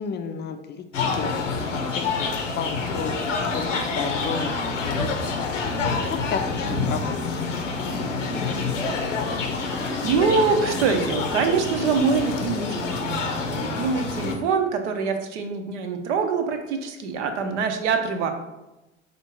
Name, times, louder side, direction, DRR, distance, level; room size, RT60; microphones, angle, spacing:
voice 1, 0.0-1.7 1.9-5.5 5.8-8.0, left 6 dB, 30° left, 7 dB, 0.4 m, -33 dB
sound 1, 0.9-14.3, left 4 dB, 85° left, 0.7 m, -27 dB
voice 2, 10.0-18.3, right 5 dB, 70° right, 6 dB, 0.7 m, -24 dB
4.3 x 2.5 x 4.4 m, 1.0 s
hypercardioid pair, 70°, 36 cm